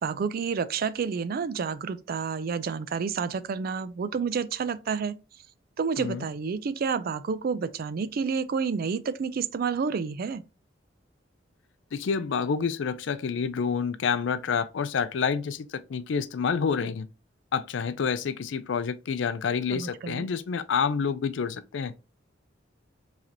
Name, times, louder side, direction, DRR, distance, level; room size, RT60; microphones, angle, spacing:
voice 1, 0.0-5.2 5.8-10.4 19.7-20.3, right 5 dB, 50° right, 0.4 m, -29 dB
voice 2, 11.9-17.1 17.5-21.9, left 6 dB, 70° left, 0.4 m, -28 dB
4.8 x 3.3 x 2.8 m
head